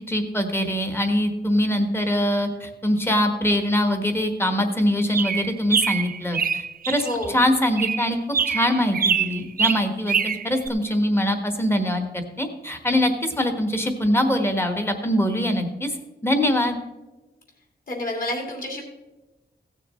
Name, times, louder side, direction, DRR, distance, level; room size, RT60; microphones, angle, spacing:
voice 1, 0.1-15.9 16.2-16.8, equal, 10° left, 6 dB, 1.2 m, -23 dB
sound 1, 5.1-7.3 7.8-10.7, right 6 dB, 50° right, 0.5 m, -24 dB
voice 2, 7.0-7.4 17.9-18.8, left 1 dB, 50° left, 0 dB, 3.0 m, -29 dB
16.0 x 6.7 x 4.2 m, 1.1 s
wide cardioid pair, 170°, 19 cm